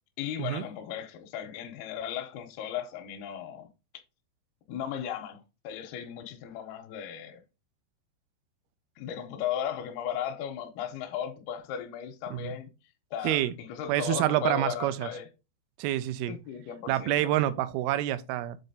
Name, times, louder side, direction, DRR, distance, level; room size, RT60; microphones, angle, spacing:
voice 1, 0.2-3.7 4.7-7.4 9.0-12.7 13.1-15.3 16.3-17.3, left 9 dB, 80° left, 2.5 m, -36 dB
voice 2, 13.9-15.1 15.8-16.4 16.9-18.6, right 13 dB, 85° right, 2.3 m, -27 dB
7.6 x 3.9 x 3.9 m
omnidirectional pair, 4.8 m